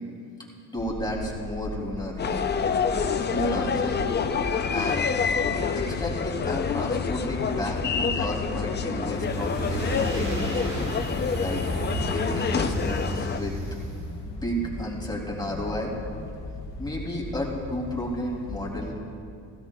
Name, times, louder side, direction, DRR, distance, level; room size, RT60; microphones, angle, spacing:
voice 1, 0.7-2.2 3.3-4.1 4.7-5.2 5.8-10.7 11.4-11.6 12.1-13.5 14.2-15.9 16.8-19.0, equal, 15° left, -3 dB, 3.1 m, -32 dB
sound 1, 0.8-18.9, left 3 dB, 75° left, 1.1 m, -37 dB
sound 2, 2.2-13.4, left 6 dB, 35° left, 0.6 m, -27 dB
sound 3, 9.0-14.3, right 2 dB, 60° right, 3.2 m, -33 dB
17.0 x 16.0 x 2.4 m, 2.4 s
cardioid pair, 100°, 31 cm